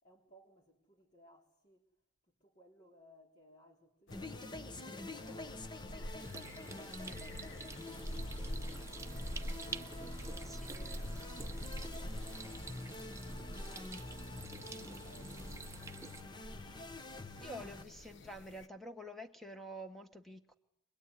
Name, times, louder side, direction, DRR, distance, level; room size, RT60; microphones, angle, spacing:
voice 1, 0.0-1.9 2.3-6.2 6.8-9.6 13.4-14.3 14.6-16.3, equal, 40° left, 3.9 m, -64 dB
sound 1, 4.1-18.7, equal, 65° left, 1.2 m, -47 dB
sound 2, 4.1-17.8, left 2 dB, 20° left, 1.1 m, -47 dB
sound 3, 6.2-16.2, right 4 dB, 15° right, 1.1 m, -49 dB
voice 2, 10.5-11.0 17.4-20.6, equal, ahead, 1.7 m, -48 dB
25.0 x 22.0 x 9.8 m
head